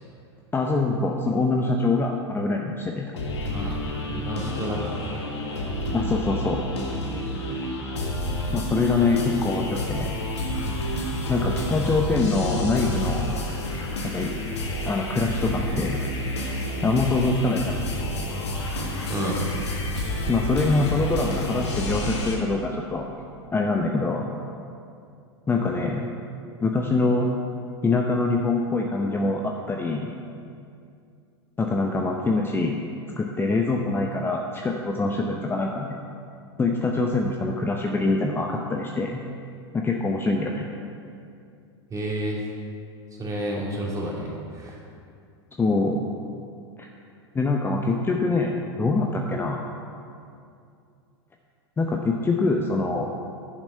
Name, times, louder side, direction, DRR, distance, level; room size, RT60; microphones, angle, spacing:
voice 1, 0.5-3.1 5.9-6.6 8.5-10.1 11.3-13.3 14.1-14.3 14.9-16.0 16.8-17.8 20.3-23.1 23.5-24.3 25.5-26.1 26.6-27.3 27.8-30.1 31.6-32.8 33.2-35.9 36.6-39.2 39.7-40.7 45.6-46.0 46.8-46.9 47.3-49.6 51.8-53.1, left 3 dB, 15° left, 1 dB, 0.7 m, -24 dB
sound 1, 3.2-22.4, left 1 dB, 75° left, 1.7 m, -29 dB
voice 2, 4.1-5.1 19.1-19.4 41.9-42.4 43.2-44.8, right 1 dB, 25° right, -3 dB, 2.5 m, -30 dB
10.5 x 6.0 x 5.6 m, 2.4 s
hypercardioid pair, 95°, 14 cm